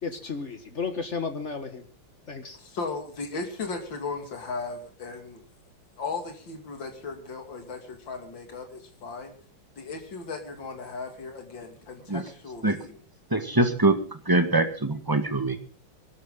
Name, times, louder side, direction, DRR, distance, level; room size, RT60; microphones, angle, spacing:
voice 1, 0.0-1.8 2.3-2.6, left 5 dB, 40° left, 8 dB, 1.7 m, -33 dB
voice 2, 2.5-5.4 6.0-9.3 9.8-13.0, left 4 dB, 70° left, 4 dB, 3.4 m, -36 dB
voice 3, 13.3-14.0 14.2-15.6, right 2 dB, 10° right, 7 dB, 1.7 m, -23 dB
24.0 x 12.5 x 3.9 m, 0.38 s
omnidirectional pair, 2.1 m